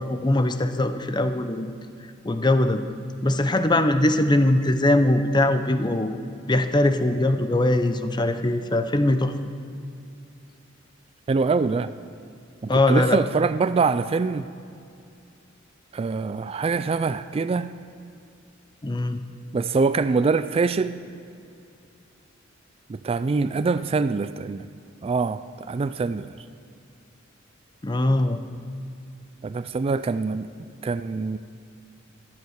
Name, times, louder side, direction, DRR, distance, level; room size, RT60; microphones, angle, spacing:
voice 1, 0.0-1.7 2.2-2.8 3.2-6.2 6.5-9.3 12.7-13.2 18.8-19.2 27.8-28.4, left 1 dB, 25° left, 9 dB, 0.7 m, -21 dB
voice 2, 11.3-11.9 12.6-14.4 15.9-17.7 19.5-21.0 22.9-24.7 25.0-26.3 29.4-30.5 30.8-31.4, right 4 dB, 30° right, 13 dB, 0.3 m, -24 dB
13.0 x 11.0 x 6.5 m, 2.5 s
head